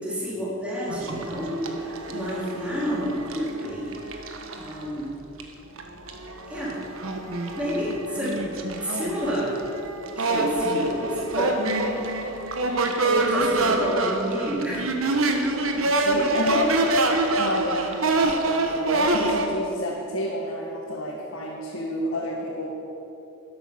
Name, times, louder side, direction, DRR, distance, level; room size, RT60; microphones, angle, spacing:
voice 1, 0.0-4.0 4.5-5.1 6.5-6.8 7.6-9.5 10.2-11.5 13.0-14.9, equal, 5° right, -8 dB, 4.0 m, -29 dB
sound 1, 0.9-4.8 5.4-5.5 5.8-19.5, right 2 dB, 70° right, 1.4 m, -26 dB
voice 2, 10.6-11.0 15.7-16.8 17.3-18.0 18.4-22.7, left 1 dB, 65° left, -3 dB, 1.9 m, -30 dB
12.5 x 11.0 x 7.1 m, 2.9 s
head